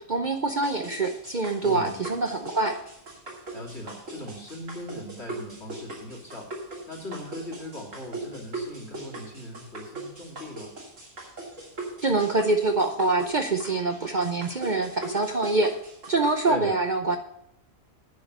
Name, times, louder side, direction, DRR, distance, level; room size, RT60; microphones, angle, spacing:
voice 1, 0.0-2.8 12.0-15.7 16.1-17.2, right 3 dB, 40° right, 5 dB, 0.8 m, -25 dB
sound 1, 0.6-16.3, right 2 dB, 70° right, 3.1 m, -39 dB
voice 2, 1.6-2.0 3.5-6.5 6.9-10.7 16.5-16.7, left 1 dB, 50° left, 0 dB, 2.8 m, -39 dB
9.6 x 6.4 x 8.0 m, 0.76 s
omnidirectional pair, 1.4 m